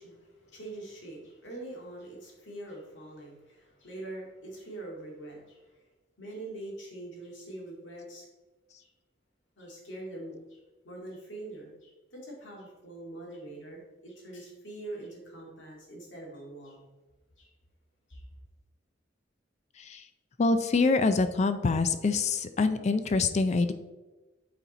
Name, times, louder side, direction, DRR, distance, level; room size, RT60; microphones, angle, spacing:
voice 1, 0.0-5.8 6.2-8.3 8.8-8.9 9.6-10.6 10.8-16.8 17.4-17.5 18.1-18.2, right 2 dB, 90° left, -2 dB, 2.1 m, -44 dB
voice 2, 20.4-23.7, left 3 dB, 40° left, 10 dB, 0.4 m, -25 dB
8.2 x 4.2 x 4.1 m, 1.1 s
head